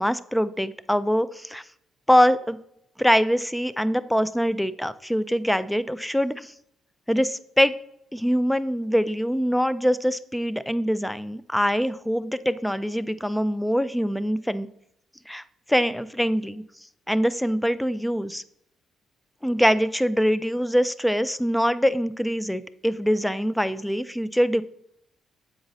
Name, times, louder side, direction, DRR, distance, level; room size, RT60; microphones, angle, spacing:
voice 1, 0.0-1.6 2.1-2.6 3.0-6.5 7.1-7.8 8.1-14.7 15.3-15.4 15.7-16.6 17.1-18.4 19.4-24.6, equal, 5° left, 15 dB, 0.4 m, -23 dB
7.8 x 4.0 x 4.0 m, 0.75 s
cardioid pair, 90°, 0 cm